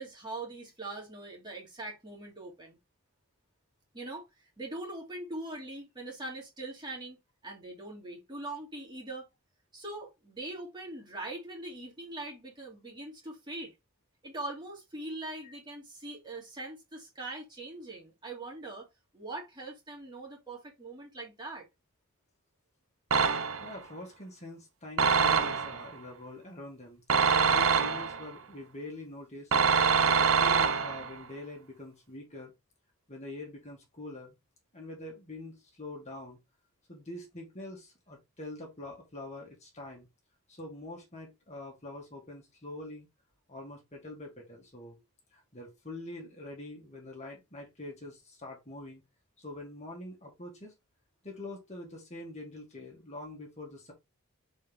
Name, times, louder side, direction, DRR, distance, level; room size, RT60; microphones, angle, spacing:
voice 1, 0.0-2.8 3.9-7.2 7.4-9.2 9.7-13.7 14.2-18.9 19.1-21.6, right 2 dB, 20° right, 2.4 m, -42 dB
sound 1, 23.1-23.8 25.0-25.9 27.1-28.3 29.5-31.2, right 6 dB, 70° right, 0.8 m, -25 dB
voice 2, 23.6-27.0 27.5-29.5 29.9-32.5 33.1-34.4 34.7-36.4 36.9-40.1 40.5-43.1 43.5-45.0 45.3-49.0 49.4-50.7 51.2-53.9, left 2 dB, 30° left, 2.0 m, -44 dB
6.3 x 4.4 x 3.5 m
head